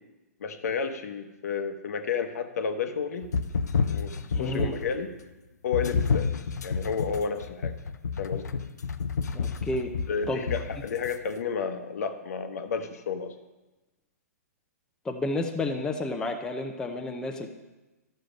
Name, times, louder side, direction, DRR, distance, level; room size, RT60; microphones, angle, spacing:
voice 1, 0.4-3.3 3.8-5.1 5.6-6.4 6.6-7.7 8.2-8.6 10.1-13.3, left 6 dB, 70° left, 7 dB, 1.0 m, -31 dB
sound 1, 3.2-5.0 5.7-11.1, left 5 dB, 85° left, 0.6 m, -30 dB
voice 2, 4.3-4.7 9.3-9.9 10.3-10.6 15.0-17.5, left 2 dB, 10° left, 3 dB, 0.7 m, -31 dB
12.0 x 6.6 x 5.2 m, 1.1 s
hypercardioid pair, 140°, 9 cm